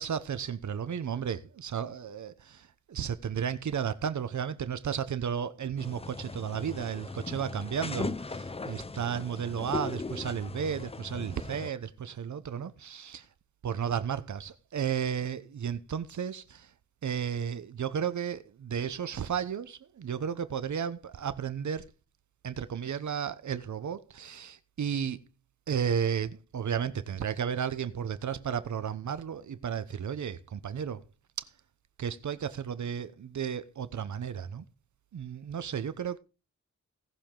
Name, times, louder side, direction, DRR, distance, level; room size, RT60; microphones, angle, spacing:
voice 1, 0.0-13.3 13.6-16.7 17.0-21.8 22.4-25.2 25.7-31.0 31.4-31.5 32.0-34.6 35.1-36.2, right 8 dB, 75° right, 0.9 m, -33 dB
sound 1, 5.8-11.7, left 3 dB, 20° left, 0.5 m, -38 dB
18.0 x 6.9 x 3.8 m
wide cardioid pair, 100°, 29 cm